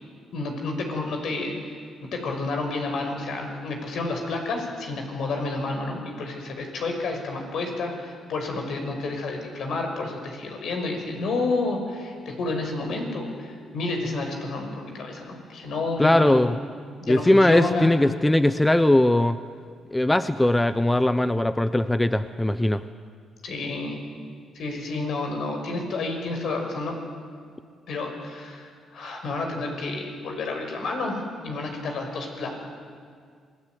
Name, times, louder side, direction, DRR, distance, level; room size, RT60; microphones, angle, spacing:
voice 1, 0.3-1.5 2.0-16.5 17.0-17.9 23.4-24.0 24.5-27.0 27.9-32.6, left 3 dB, 70° left, 3 dB, 6.0 m, -30 dB
voice 2, 16.0-16.6 17.1-19.4 19.9-22.8, left 1 dB, 10° left, 12 dB, 0.8 m, -20 dB
27.0 x 19.0 x 9.5 m, 2.1 s
cardioid pair, 90°, 0 cm